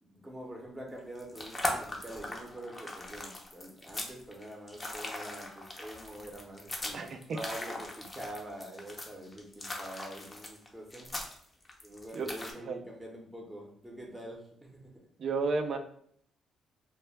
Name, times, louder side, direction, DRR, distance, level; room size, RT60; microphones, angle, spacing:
voice 1, 0.0-11.1 11.8-14.9, right 1 dB, 10° right, -1 dB, 0.7 m, -45 dB
sound 1, 1.0-12.5, left 1 dB, 25° left, 0.5 m, -40 dB
voice 2, 6.9-7.4 12.1-12.3 12.6-12.8 15.2-15.8, right 4 dB, 55° right, 7 dB, 0.3 m, -32 dB
2.2 x 2.1 x 3.3 m, 0.66 s
cardioid pair, 90°, 0 cm